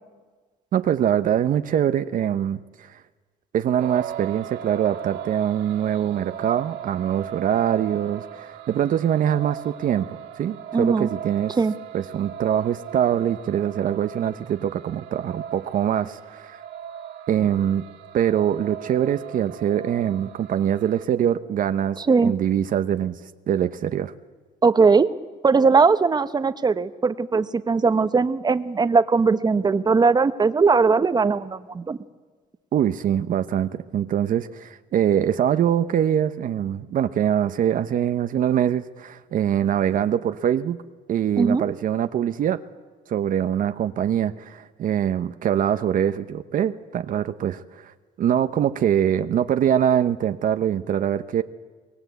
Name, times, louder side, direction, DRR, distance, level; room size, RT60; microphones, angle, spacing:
voice 1, 0.7-3.0 3.5-10.1 10.4-11.6 11.9-16.6 17.3-17.8 18.1-23.2 23.5-24.1 32.7-40.8 41.1-42.6 43.1-51.4, right 9 dB, 55° right, 10 dB, 0.8 m, -23 dB
sound 1, 3.8-21.1, right 10 dB, 80° right, 1.5 m, -38 dB
voice 2, 10.7-11.1 11.6-11.7 22.0-22.3 24.6-25.1 25.4-32.0 41.4-41.6, right 4 dB, 25° right, 11 dB, 1.0 m, -19 dB
24.5 x 21.0 x 8.2 m, 1.4 s
cardioid pair, 110°, 17 cm